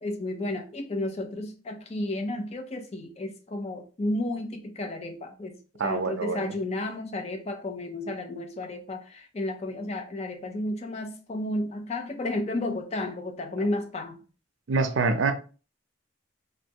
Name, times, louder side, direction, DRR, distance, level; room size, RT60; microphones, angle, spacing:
voice 1, 0.0-5.6 5.8-14.2, left 1 dB, 30° left, 0.4 m, -32 dB
voice 2, 5.8-6.6 14.7-15.3, right 4 dB, 80° right, 0.5 m, -25 dB
3.2 x 2.6 x 2.7 m
head